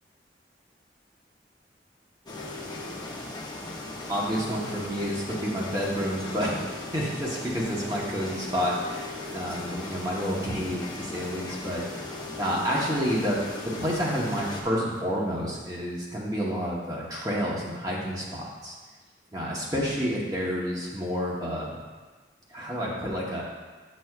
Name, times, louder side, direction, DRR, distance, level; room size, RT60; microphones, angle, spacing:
sound 1, 2.3-14.6, left 2 dB, 25° left, 0.8 m, -37 dB
voice 1, 4.1-18.7 19.3-21.8 22.5-23.4, equal, 20° right, -5 dB, 1.0 m, -29 dB
9.0 x 6.2 x 2.4 m, 1.4 s
head